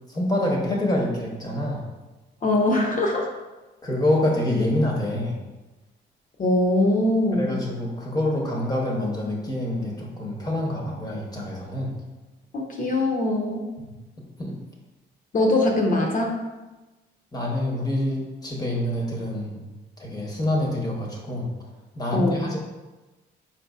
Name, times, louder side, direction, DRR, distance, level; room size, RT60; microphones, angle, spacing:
voice 1, 0.1-1.8 3.8-5.4 7.3-11.9 14.4-14.5 17.3-19.6 20.0-21.5 21.9-22.6, left 1 dB, 20° left, -2 dB, 0.9 m, -26 dB
voice 2, 2.4-3.3 6.4-7.5 12.5-13.7 15.3-16.4 22.1-22.5, left 1 dB, 40° left, 0 dB, 0.8 m, -22 dB
4.3 x 4.1 x 2.4 m, 1.1 s
cardioid pair, 90°, 20 cm